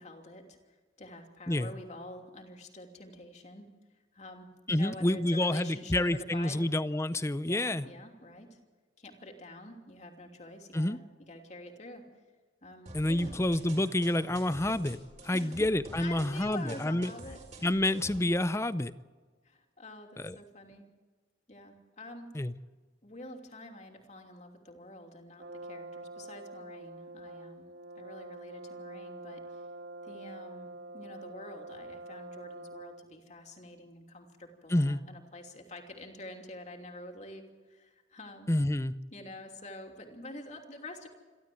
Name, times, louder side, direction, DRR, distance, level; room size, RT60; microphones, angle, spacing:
voice 1, 0.0-3.7 4.1-6.6 7.4-8.6 9.0-12.0 12.6-13.4 15.3-15.7 16.0-17.8 19.4-20.9 21.5-22.4 23.0-27.7 28.0-29.6 30.0-38.5 39.1-41.1, left 1 dB, 40° left, 3 dB, 3.0 m, -47 dB
voice 2, 4.7-7.8 10.7-11.0 12.9-15.0 15.2-17.1 17.6-18.9 20.2-20.4 22.3-22.5 34.7-35.0 38.5-38.9, left 1 dB, 15° left, 15 dB, 0.6 m, -28 dB
sound 1, 12.9-18.2, right 1 dB, 40° right, 4.9 m, -48 dB
Brass instrument, 25.4-33.2, right 2 dB, 60° right, 1.1 m, -46 dB
27.5 x 12.5 x 7.8 m, 1.4 s
head